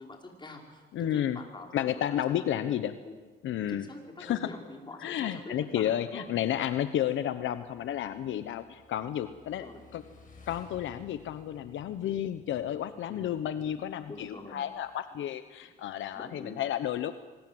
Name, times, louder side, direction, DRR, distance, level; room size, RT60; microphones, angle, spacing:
voice 1, 0.0-2.7 3.0-3.1 3.7-6.3 9.6-9.8 13.1-13.3 14.1-14.6 16.1-16.6, left 2 dB, 25° left, 1 dB, 5.3 m, -45 dB
voice 2, 0.9-1.4 1.7-2.9 3.4-3.9 4.2-4.5 5.0-9.7 9.9-10.0 10.5-17.1, left 11 dB, 75° left, 11 dB, 1.0 m, -31 dB
Motorcycle / Engine, 7.1-14.9, left 4 dB, 40° left, 7.4 m, -58 dB
24.5 x 20.5 x 7.9 m, 1.3 s
cardioid pair, 90°, 20 cm